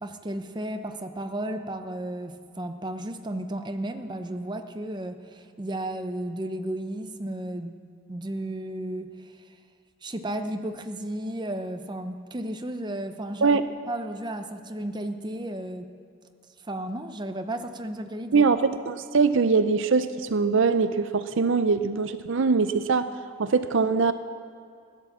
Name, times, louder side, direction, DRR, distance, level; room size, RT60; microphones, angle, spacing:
voice 1, 0.0-7.8 8.1-9.3 10.0-13.6 13.9-15.9 16.6-18.5, right 1 dB, 20° right, 7 dB, 0.7 m, -33 dB
voice 2, 18.3-23.0 23.4-24.1, right 4 dB, 60° right, 11 dB, 0.5 m, -22 dB
15.5 x 10.5 x 7.3 m, 2.4 s
head